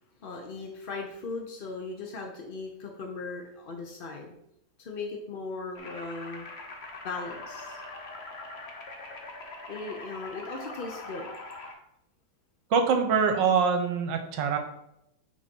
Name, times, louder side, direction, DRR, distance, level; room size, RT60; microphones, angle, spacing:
voice 1, 0.2-4.4 4.8-6.5 7.0-7.8 9.7-11.3, left 3 dB, 65° left, 1 dB, 0.5 m, -38 dB
sound 1, 5.8-11.7, left 2 dB, 45° left, 0.9 m, -42 dB
voice 2, 12.7-14.6, right 6 dB, 75° right, 5 dB, 1.5 m, -24 dB
6.6 x 3.8 x 5.3 m, 0.80 s
omnidirectional pair, 2.1 m